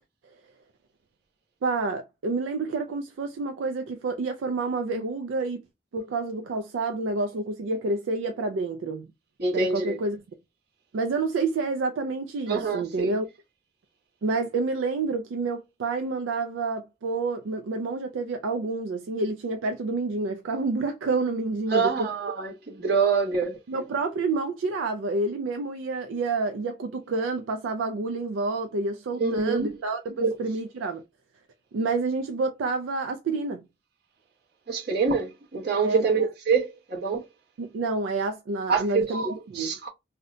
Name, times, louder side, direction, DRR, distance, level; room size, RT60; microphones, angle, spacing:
voice 1, 1.6-5.6 5.9-9.1 9.5-10.2 10.9-13.3 14.2-22.1 23.7-31.0 31.7-33.6 35.8-36.1 37.6-39.7, right 3 dB, 80° right, 0.4 m, -28 dB
voice 2, 9.4-10.0 12.5-13.2 21.7-23.6 29.2-29.7 30.2-30.3 34.7-37.2 38.7-39.9, right 5 dB, 55° right, 1.0 m, -25 dB
2.7 x 2.1 x 3.6 m
head